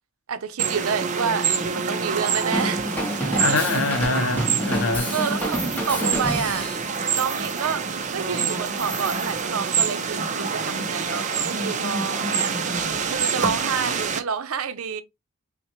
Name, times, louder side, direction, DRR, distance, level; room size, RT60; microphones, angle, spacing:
voice 1, 0.3-2.9 3.5-3.8 5.1-6.7 7.1-15.0, right 6 dB, 80° right, 0.6 m, -29 dB
sound 1, 0.6-14.2, right 6 dB, 35° right, 0.5 m, -27 dB
Drum kit / Drum, 2.5-6.9, equal, 5° left, 0.8 m, -28 dB
voice 2, 3.4-5.1, left 4 dB, 70° left, 0.6 m, -25 dB
sound 2, 4.3-4.5 5.0-6.3 6.6-7.8 8.1-8.2 8.4-9.5, right 2 dB, 10° right, 2.7 m, -39 dB
5.7 x 2.1 x 2.8 m
head